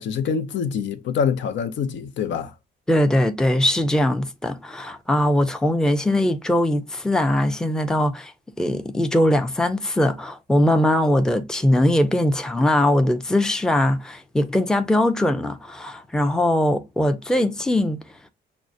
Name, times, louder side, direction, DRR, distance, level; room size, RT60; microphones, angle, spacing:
voice 1, 0.0-2.5, left 6 dB, 70° left, 0.6 m, -25 dB
voice 2, 2.9-8.3 8.6-18.0, left 1 dB, 5° left, 0.5 m, -21 dB
6.0 x 2.1 x 2.5 m
cardioid pair, 90°, 20 cm